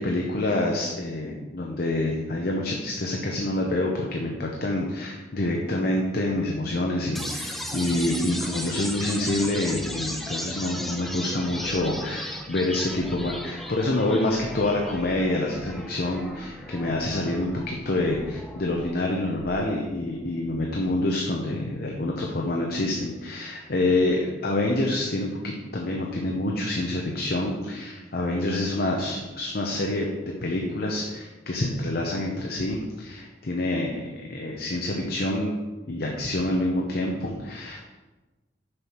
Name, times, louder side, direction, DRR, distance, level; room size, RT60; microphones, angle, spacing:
voice 1, 0.0-30.1 30.4-35.6 35.9-37.8, left 1 dB, 55° left, 0 dB, 0.8 m, -27 dB
sound 1, 7.1-21.1, equal, ahead, 0.6 m, -37 dB
6.6 x 5.8 x 4.5 m, 1.2 s
head